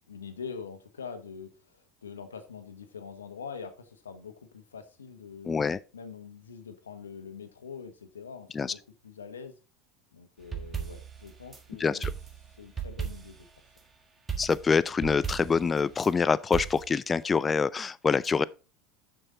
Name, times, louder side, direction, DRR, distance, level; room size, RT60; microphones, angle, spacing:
voice 1, 0.1-5.6 5.9-9.6 10.1-12.1 12.6-13.5, left 6 dB, 90° left, 1.1 m, -44 dB
voice 2, 5.5-5.8 8.5-8.7 11.8-12.1 14.4-18.4, left 5 dB, 25° left, 0.4 m, -26 dB
sound 1, 10.4-11.6 12.0-13.5 14.3-16.1 16.5-16.9, right 7 dB, 25° right, 1.6 m, -37 dB
6.5 x 6.2 x 3.8 m
hypercardioid pair, 80°, 0 cm